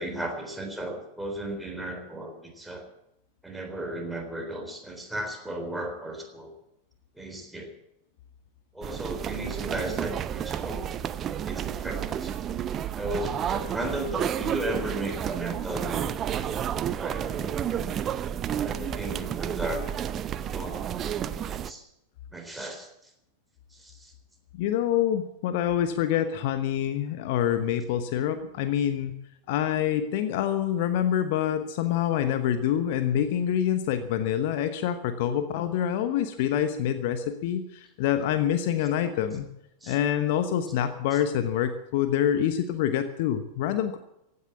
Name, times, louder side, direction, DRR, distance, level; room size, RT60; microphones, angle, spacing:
voice 1, 0.0-2.9 3.4-6.5 7.2-7.7 8.7-10.9 11.4-12.4 12.9-18.0 18.7-19.9 20.3-21.8 22.3-23.1 23.7-24.1 39.8-40.0 41.1-41.2, right 1 dB, 5° right, 3 dB, 3.8 m, -35 dB
sound 1, 8.8-21.7, right 9 dB, 30° right, 0.6 m, -31 dB
voice 2, 24.6-29.1 29.5-39.5 39.9-44.0, left 10 dB, 50° left, 9 dB, 1.1 m, -26 dB
16.0 x 9.7 x 8.5 m, 0.84 s
figure-of-eight pair, 90°, 0 cm